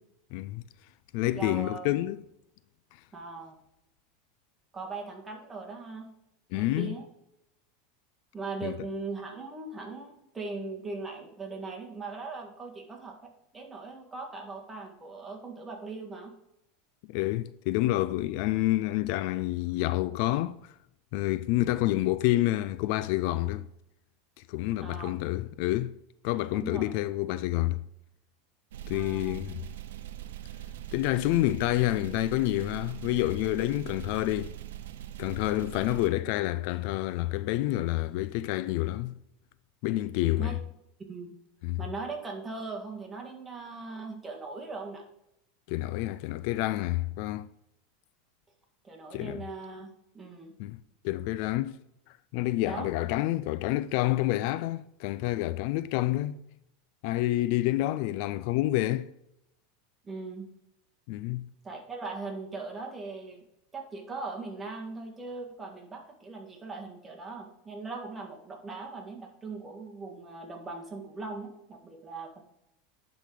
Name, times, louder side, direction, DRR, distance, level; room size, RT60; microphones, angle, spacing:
voice 1, 0.3-0.6 1.1-2.2 6.5-6.9 8.6-8.7 17.1-20.7 21.1-23.7 24.5-26.0 26.2-27.8 28.9-29.6 30.9-34.6 35.2-39.2 39.8-40.6 41.6-41.8 45.7-47.5 49.1-49.4 50.6-50.8 51.0-51.8 52.3-56.4 57.0-59.1 61.1-61.5, left 16 dB, 60° left, 0.3 m, -28 dB
voice 2, 1.3-1.9 3.1-3.5 4.7-6.1 6.5-7.0 8.3-16.3 24.8-25.1 26.5-26.8 28.9-29.4 40.4-40.6 41.1-41.3 41.8-45.0 48.8-50.5 52.6-52.9 60.0-60.5 61.6-63.4 63.7-72.4, right 3 dB, 15° right, 1.7 m, -39 dB
sound 1, 28.7-36.1, right 12 dB, 85° right, 0.6 m, -42 dB
10.5 x 4.0 x 4.8 m
supercardioid pair, 130°, 0 cm